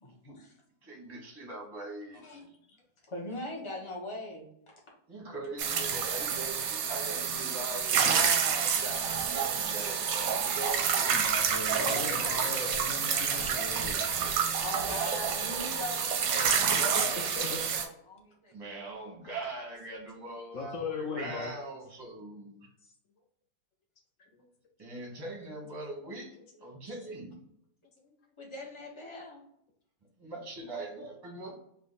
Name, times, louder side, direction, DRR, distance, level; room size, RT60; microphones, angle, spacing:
voice 1, 0.0-0.5 2.2-2.8 3.1-4.8 11.6-12.4 13.8-14.0 14.6-18.5 28.4-29.4, left 1 dB, 50° left, -3 dB, 0.3 m, -42 dB
voice 2, 0.8-2.2 5.1-10.0 10.4-11.1 11.9-12.7 14.8-15.0 15.3-15.4 16.3-17.2 18.5-22.5 24.8-26.3 26.6-27.4 30.2-31.6, right 2 dB, 20° right, -1 dB, 0.6 m, -41 dB
sound 1, 5.6-17.9, right 7 dB, 70° right, 0.9 m, -29 dB
voice 3, 11.1-14.0 17.4-17.7 20.5-21.5 24.2-24.5 24.9-25.0 28.0-28.3, left 4 dB, 70° left, 2 dB, 0.7 m, -39 dB
3.4 x 2.2 x 3.8 m, 0.73 s
omnidirectional pair, 1.8 m